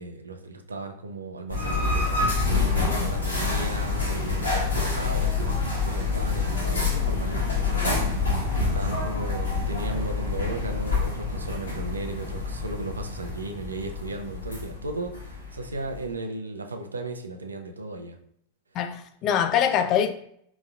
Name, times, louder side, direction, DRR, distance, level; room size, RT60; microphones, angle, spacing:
voice 1, 0.0-18.2, right 2 dB, 75° right, 0.5 m, -36 dB
sound 1, 1.5-16.1, left 4 dB, 75° left, 1.6 m, -27 dB
voice 2, 2.8-3.1 18.7-20.1, left 9 dB, 35° left, 0.4 m, -24 dB
4.7 x 4.0 x 2.3 m
figure-of-eight pair, 90°, 0 cm